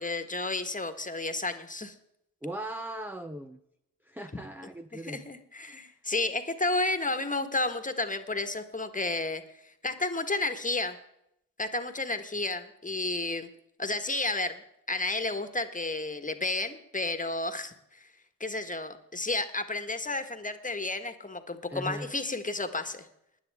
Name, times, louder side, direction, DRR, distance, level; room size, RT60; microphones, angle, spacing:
voice 1, 0.0-1.9 4.9-9.4 9.8-11.0 11.6-13.5 13.8-14.6 14.9-18.1 18.4-23.1, left 2 dB, 20° left, 9 dB, 1.5 m, -32 dB
voice 2, 2.4-3.6 4.1-5.2 5.7-5.8 21.7-22.1, right 1 dB, 5° right, 7 dB, 0.7 m, -39 dB
19.5 x 9.9 x 3.6 m, 0.78 s
hypercardioid pair, 40°, 42 cm